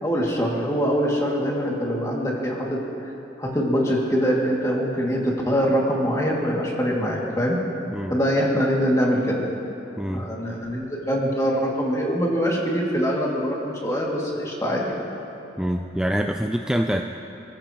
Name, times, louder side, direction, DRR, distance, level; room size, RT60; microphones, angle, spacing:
voice 1, 0.0-2.8 3.4-7.6 8.1-9.4 10.1-14.8, equal, 15° left, -3 dB, 2.5 m, -23 dB
voice 2, 10.0-10.3 15.6-17.0, equal, 5° right, 3 dB, 0.4 m, -25 dB
28.5 x 14.5 x 3.1 m, 3.0 s
head